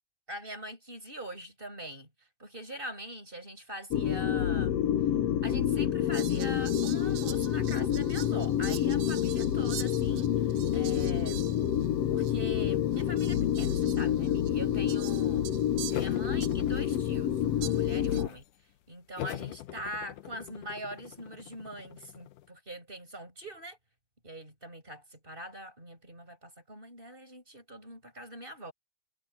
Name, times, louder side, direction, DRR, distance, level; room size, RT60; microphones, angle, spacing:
voice 1, 0.3-2.1 2.4-4.8 5.4-11.4 12.1-15.5 15.9-18.4 18.9-23.8 24.2-28.7, right 1 dB, 15° right, 8.0 m, -43 dB
sound 1, 3.9-18.3, left 10 dB, 65° left, 1.9 m, -28 dB
Fowl, 6.1-11.9 12.2-12.3 12.9-16.8 17.6-18.2, right 14 dB, 85° right, 2.4 m, -45 dB
sound 2, 15.9-17.4 17.8-18.5 19.2-22.5, left 13 dB, 90° left, 2.4 m, -42 dB
omnidirectional pair, 3.5 m